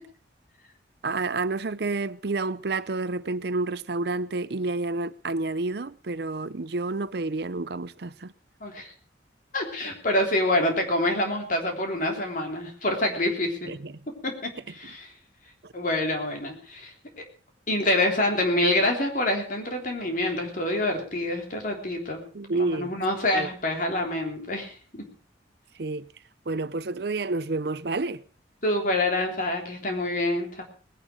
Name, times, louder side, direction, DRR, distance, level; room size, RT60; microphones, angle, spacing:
voice 1, 1.0-8.3 13.7-13.9 15.6-15.7 22.3-22.9 23.3-23.5 25.8-26.0 26.5-28.2, right 3 dB, 60° right, 0.7 m, -29 dB
voice 2, 8.6-8.9 9.5-13.7 14.2-15.1 15.7-16.9 17.7-22.2 22.5-24.7 28.6-30.6, left 1 dB, 45° left, 3.5 m, -26 dB
20.0 x 11.0 x 5.0 m
head